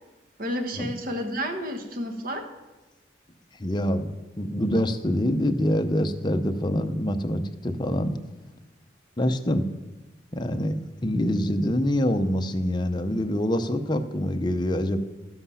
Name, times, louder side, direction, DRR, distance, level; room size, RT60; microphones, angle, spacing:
voice 1, 0.4-2.5, equal, 50° right, 6 dB, 1.2 m, -31 dB
voice 2, 3.6-4.1 4.4-8.2 9.2-9.7 10.3-15.0, equal, 25° left, 6 dB, 0.7 m, -25 dB
12.5 x 7.9 x 5.7 m, 1.1 s
head